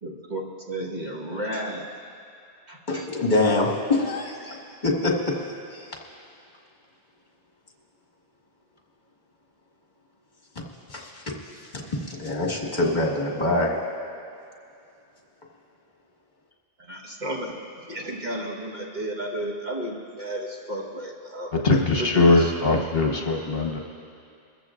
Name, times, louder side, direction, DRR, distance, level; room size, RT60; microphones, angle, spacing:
voice 1, 0.0-1.9 2.7-3.1 16.8-17.5 17.9-21.5 22.0-22.6, right 1 dB, 45° right, -2 dB, 1.6 m, -33 dB
voice 2, 2.9-5.4 5.7-6.0 10.9-13.8, left 2 dB, 45° left, -2 dB, 1.9 m, -25 dB
voice 3, 21.6-23.8, left 3 dB, 65° left, 1 dB, 1.2 m, -20 dB
22.5 x 14.5 x 2.5 m, 2.5 s
omnidirectional pair, 1.1 m